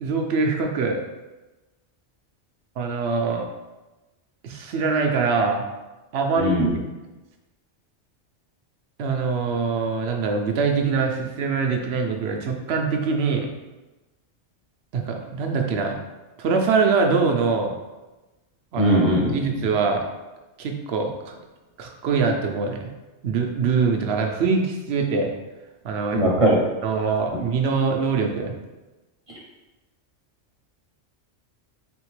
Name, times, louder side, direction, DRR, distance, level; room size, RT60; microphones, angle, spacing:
voice 1, 0.0-1.0 2.8-3.5 4.4-5.7 6.1-6.6 9.0-13.5 14.9-16.0 16.4-17.7 18.7-20.1 20.6-21.4 21.8-22.9 23.2-25.3 25.8-26.2 26.8-28.5, right 4 dB, 70° right, 3 dB, 0.8 m, -23 dB
voice 2, 6.4-6.7 18.8-19.6 26.1-26.6, equal, 30° right, -4 dB, 0.8 m, -20 dB
3.9 x 3.5 x 3.1 m, 1.1 s
omnidirectional pair, 1.2 m